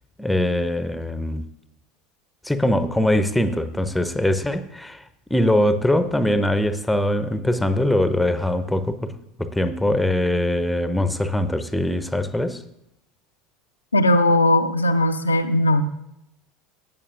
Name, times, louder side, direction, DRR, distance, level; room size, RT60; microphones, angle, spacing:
voice 1, 0.2-1.4 2.4-5.0 5.3-9.1 9.4-12.6, left 1 dB, 5° left, 11 dB, 0.7 m, -22 dB
voice 2, 13.9-15.8, left 1 dB, 85° left, 7 dB, 0.5 m, -18 dB
15.0 x 8.8 x 2.5 m, 0.81 s
figure-of-eight pair, 70°, 0 cm